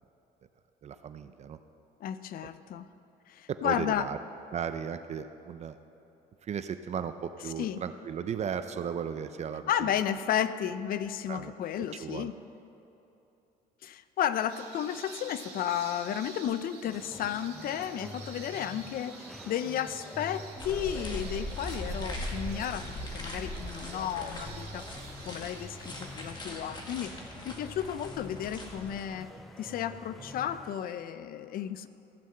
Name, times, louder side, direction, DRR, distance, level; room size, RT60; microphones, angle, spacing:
voice 1, 0.8-1.6 3.5-4.2 4.5-5.8 6.4-9.9 11.3-11.5 12.0-12.3, right 7 dB, 40° right, 10 dB, 0.5 m, -36 dB
voice 2, 2.0-2.9 3.3-4.1 7.6-7.8 9.7-12.3 13.8-24.9 25.2-29.3 29.6-31.9, left 10 dB, 60° left, 13 dB, 0.5 m, -33 dB
sound 1, 14.5-26.3, right 5 dB, 75° right, 1.9 m, -49 dB
sound 2, 16.8-30.8, left 1 dB, ahead, 0.7 m, -47 dB
sound 3, 20.6-29.0, left 1 dB, 25° left, 1.8 m, -40 dB
15.0 x 5.7 x 7.6 m, 2.9 s
cardioid pair, 110°, 17 cm